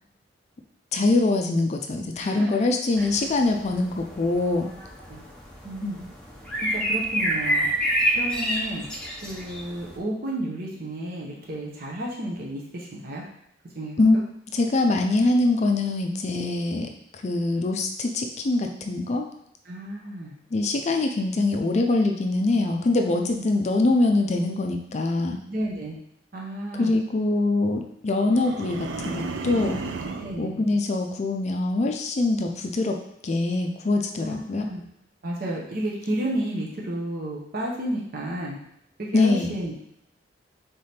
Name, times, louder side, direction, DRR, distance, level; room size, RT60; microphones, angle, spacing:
voice 1, 0.9-4.7 5.8-6.0 14.0-14.2 14.5-19.3 20.5-25.4 26.8-29.8 30.4-33.0 33.2-34.7 39.1-39.6, left 2 dB, 40° left, 4 dB, 0.4 m, -23 dB
voice 2, 2.2-2.5 3.0-3.1 4.6-5.2 5.6-6.0 6.6-7.7 8.1-8.8 9.2-13.2 13.7-14.2 19.6-20.3 22.6-22.8 23.0-23.4 25.5-26.0 26.3-26.9 30.2-30.6 34.2-34.8 35.2-38.6 39.0-39.7, right 1 dB, 55° right, -3 dB, 0.9 m, -32 dB
sound 1, 2.9-10.0, right 1 dB, 5° left, 0.8 m, -28 dB
sound 2, 28.3-30.4, right 4 dB, 80° right, 0.4 m, -33 dB
3.7 x 3.4 x 4.2 m, 0.75 s
head